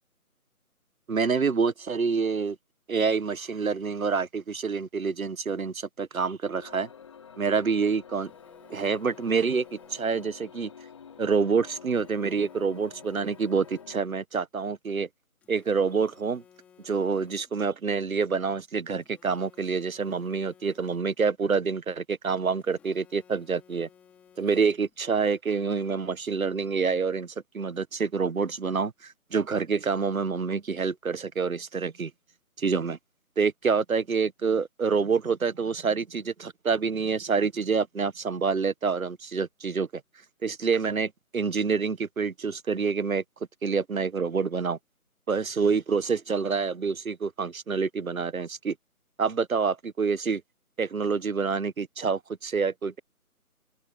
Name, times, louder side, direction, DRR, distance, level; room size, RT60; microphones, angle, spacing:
voice 1, 1.1-2.6 2.9-6.9 7.4-8.3 8.7-10.7 11.2-15.1 15.5-16.4 16.8-23.9 24.4-32.1 32.6-33.0 33.4-40.0 40.4-43.2 43.6-44.8 45.3-48.7 49.2-50.4 50.8-53.0, right 5 dB, 65° right, 1.2 m, -27 dB
sound 1, 6.6-14.0, left 7 dB, 20° left, 3.9 m, -49 dB
Telephone, 8.2-10.6 11.8-14.2 15.4-17.8 19.0-21.4 22.6-25.0, left 8 dB, 5° left, 4.3 m, -58 dB
open air
figure-of-eight pair, 175°, 45 cm